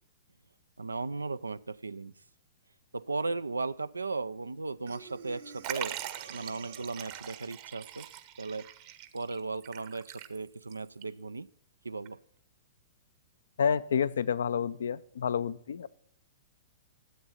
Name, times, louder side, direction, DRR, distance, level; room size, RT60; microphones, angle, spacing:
voice 1, 0.8-2.1 2.9-6.0 6.3-8.1 8.4-8.7 9.1-11.5 11.8-12.2, right 3 dB, 90° right, 16 dB, 0.3 m, -36 dB
Breathing, 4.9-7.4, right 7 dB, 65° right, 1.3 m, -49 dB
Liquid, 5.6-10.7 11.0-11.1 12.1-12.2, right 12 dB, 45° right, 0.9 m, -42 dB
voice 2, 13.6-15.9, left 7 dB, 70° left, 17 dB, 0.4 m, -29 dB
12.5 x 7.8 x 4.3 m, 0.71 s
figure-of-eight pair, 110°, 0 cm